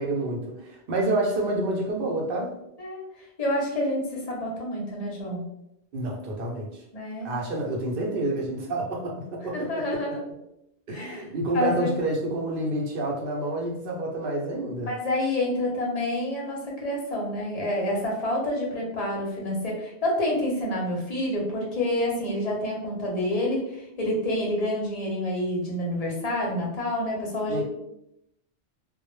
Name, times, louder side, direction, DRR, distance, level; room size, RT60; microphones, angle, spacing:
voice 1, 0.0-2.5 5.9-6.8 7.2-10.2 10.9-14.9 27.5-27.6, right 1 dB, 60° right, 0 dB, 0.7 m, -28 dB
voice 2, 3.4-5.4 6.9-7.3 9.5-10.2 10.9-11.2 11.5-11.9 14.8-27.6, left 1 dB, 45° left, -2 dB, 0.6 m, -28 dB
2.0 x 2.0 x 3.0 m, 0.82 s
omnidirectional pair, 1.2 m